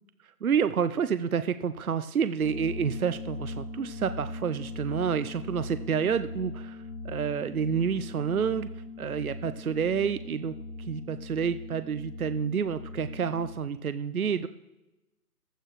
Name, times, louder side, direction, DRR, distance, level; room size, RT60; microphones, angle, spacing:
voice 1, 0.2-14.5, right 7 dB, 65° right, 12 dB, 0.7 m, -29 dB
sound 1, 2.4-13.5, left 2 dB, 35° left, 1.3 m, -40 dB
15.5 x 13.0 x 3.2 m, 1.0 s
hypercardioid pair, 180°, 46 cm